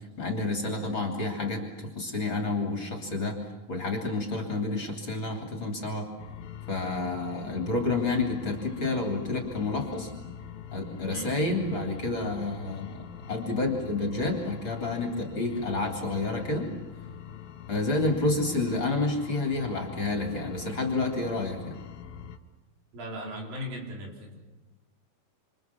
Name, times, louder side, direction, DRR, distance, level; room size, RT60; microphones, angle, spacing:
voice 1, 0.2-3.4 3.7-6.1 6.7-10.1 10.7-13.0 13.3-16.7 17.7-21.8, left 2 dB, 35° left, 2 dB, 3.4 m, -29 dB
sound 1, 6.2-22.4, left 8 dB, 85° left, 3.1 m, -43 dB
voice 2, 22.9-24.4, equal, 70° right, 0 dB, 5.9 m, -38 dB
27.5 x 27.0 x 7.1 m, 1.1 s
omnidirectional pair, 4.2 m